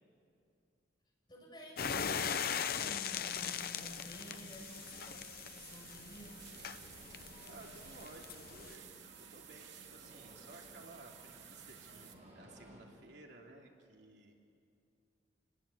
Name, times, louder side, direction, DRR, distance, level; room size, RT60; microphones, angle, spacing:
voice 1, 1.3-5.2 5.5-6.4, equal, 25° left, -2 dB, 6.7 m, -52 dB
sound 1, 1.8-8.8, left 7 dB, 55° left, 0.7 m, -40 dB
sound 2, 3.3-12.1, right 9 dB, 80° right, 2.1 m, -55 dB
sound 3, 6.2-12.8, equal, 35° right, 5.8 m, -59 dB
voice 2, 7.1-8.8 9.1-14.4, right 2 dB, 65° right, 0 dB, 3.1 m, -56 dB
28.0 x 21.0 x 8.4 m, 2.5 s
head